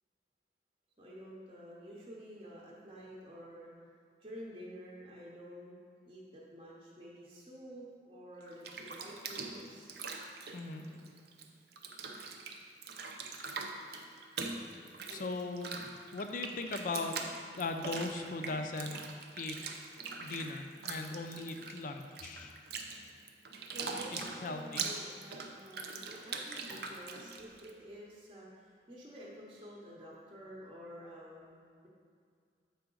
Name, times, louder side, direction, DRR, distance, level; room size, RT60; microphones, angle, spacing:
voice 1, 1.0-3.7 4.2-5.7 6.0-9.9 15.1-15.3 23.7-31.9, equal, 30° right, -5 dB, 0.7 m, -50 dB
Bathtub (filling or washing), 8.4-11.4 11.7-27.7, right 4 dB, 60° right, 0.5 m, -42 dB
voice 2, 10.5-10.9 15.1-15.8 16.1-17.1 17.6-19.0 19.3-19.6 20.2-22.6 24.1-24.8, left 3 dB, 45° left, 6 dB, 0.4 m, -39 dB
6.9 x 4.8 x 3.8 m, 2.2 s
head